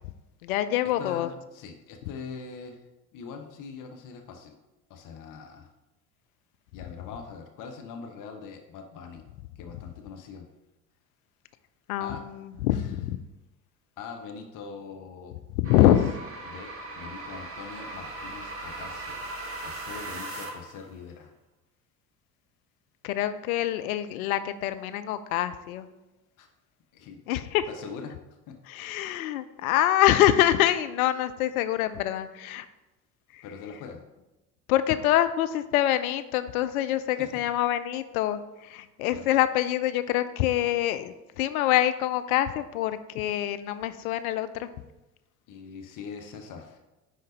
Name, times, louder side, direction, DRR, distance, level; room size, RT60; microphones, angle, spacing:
voice 1, 0.4-1.3 11.9-13.2 15.6-16.1 23.0-25.9 27.3-27.7 28.7-32.6 33.3-33.4 34.7-44.7, left 13 dB, 65° left, 11 dB, 0.6 m, -25 dB
voice 2, 1.0-2.8 3.1-4.5 4.9-5.7 6.7-9.2 9.6-10.5 12.0-12.2 12.7-12.9 14.0-15.3 15.6-15.9 16.4-19.2 19.6-21.3 26.4-26.5 26.9-27.2 27.7-28.1 28.5-28.6 33.4-34.0 37.2-37.3 39.1-39.3 45.5-46.8, left 5 dB, 40° left, 4 dB, 1.0 m, -42 dB
sound 1, 15.6-20.8, right 2 dB, 30° right, 1.5 m, -38 dB
10.0 x 3.9 x 4.1 m, 1.0 s
figure-of-eight pair, 60°, 47 cm